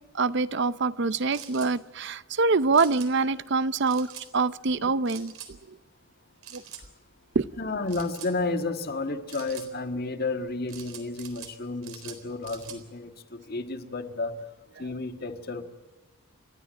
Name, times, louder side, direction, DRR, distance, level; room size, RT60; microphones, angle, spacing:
voice 1, 0.1-5.3 5.7-5.8 6.5-6.6 7.3-7.5, right 4 dB, 55° right, 16 dB, 0.6 m, -25 dB
sound 1, 1.3-1.7 2.7-3.1 3.9-4.3 5.1-5.5 6.4-6.8 7.9-8.3 9.3-9.7 10.7-11.5 11.8-12.8, right 9 dB, 90° right, 3.9 m, -44 dB
voice 2, 7.6-14.4 14.8-15.6, left 3 dB, 45° left, 7 dB, 1.7 m, -32 dB
30.0 x 12.5 x 8.8 m, 1.3 s
head